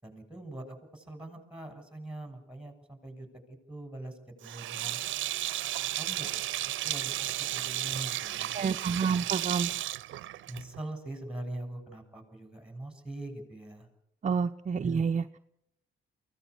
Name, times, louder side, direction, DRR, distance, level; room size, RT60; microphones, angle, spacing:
voice 1, 0.0-5.0 6.0-6.3 6.8-7.2 7.5-9.3 10.5-13.9 14.8-15.1, right 1 dB, 5° right, 6 dB, 7.0 m, -43 dB
Sink (filling or washing), 4.4-10.8, right 14 dB, 75° right, 0.7 m, -34 dB
voice 2, 8.6-9.7 14.2-15.2, right 6 dB, 40° right, 7 dB, 0.7 m, -28 dB
23.5 x 17.0 x 8.3 m, 0.80 s
cardioid pair, 90°, 20 cm